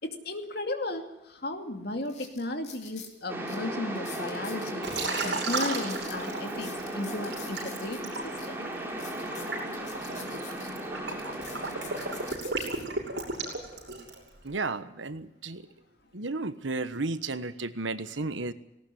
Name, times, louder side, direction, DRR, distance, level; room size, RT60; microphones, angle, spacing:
voice 1, 0.0-4.9 5.2-8.7, left 2 dB, 55° left, 5 dB, 2.5 m, -35 dB
sound 1, 1.4-1.5 2.0-3.1 3.5-3.6 3.9-5.1 5.4-8.0 8.4-8.5 8.9-10.7 11.1-12.8 13.5-13.7, left 6 dB, 40° left, 3.7 m, -47 dB
sound 2, 3.3-12.3, right 1 dB, 10° right, 4.2 m, -36 dB
Liquid, 4.8-6.8 7.3-14.3, right 3 dB, 65° right, 6.7 m, -34 dB
voice 2, 14.4-15.7 16.1-18.5, right 3 dB, 90° right, 12 dB, 1.3 m, -33 dB
18.5 x 18.5 x 10.0 m, 0.87 s
head